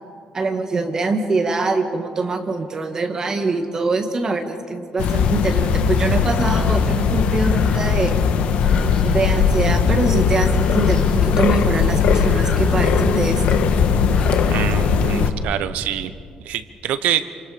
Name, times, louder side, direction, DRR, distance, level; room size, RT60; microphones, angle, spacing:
voice 1, 0.3-8.2 9.0-13.7, right 3 dB, 25° right, 5 dB, 1.9 m, -23 dB
sound 1, 5.0-15.3, left 6 dB, 70° left, 1.6 m, -18 dB
sound 2, 6.4-6.8 7.1-7.9 8.6-9.3 10.1-10.2 10.3-11.1 12.2-13.1 13.8-14.3, left 3 dB, 40° left, 7.0 m, -34 dB
voice 2, 14.4-16.1 16.4-17.3, right 10 dB, 85° right, 12 dB, 1.0 m, -24 dB
28.0 x 27.0 x 5.2 m, 2.3 s
cardioid pair, 160°, 2 cm